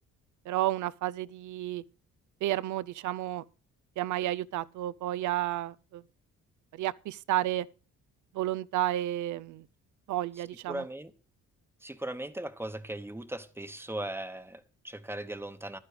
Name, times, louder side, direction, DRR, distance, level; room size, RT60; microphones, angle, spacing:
voice 1, 0.5-1.8 2.4-3.4 4.0-6.0 6.7-7.7 8.3-9.6 10.1-10.8, right 14 dB, 75° right, 0.6 m, -31 dB
voice 2, 10.4-11.1 11.8-15.8, right 1 dB, 10° right, 1.0 m, -38 dB
11.5 x 9.6 x 5.0 m
cardioid pair, 90°, 30 cm